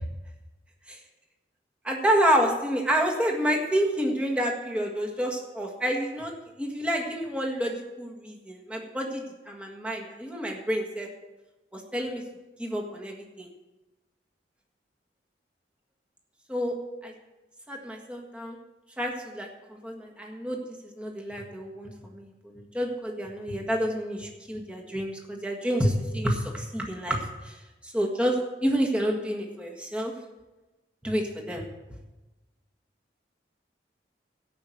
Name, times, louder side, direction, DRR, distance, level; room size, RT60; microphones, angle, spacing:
voice 1, 1.8-11.1 11.7-12.2 12.6-13.5 16.5-16.8 17.0-17.1 17.7-18.6 19.0-30.2 31.0-31.6, equal, 5° right, 0 dB, 1.7 m, -29 dB
14.0 x 5.7 x 7.9 m, 1.1 s
head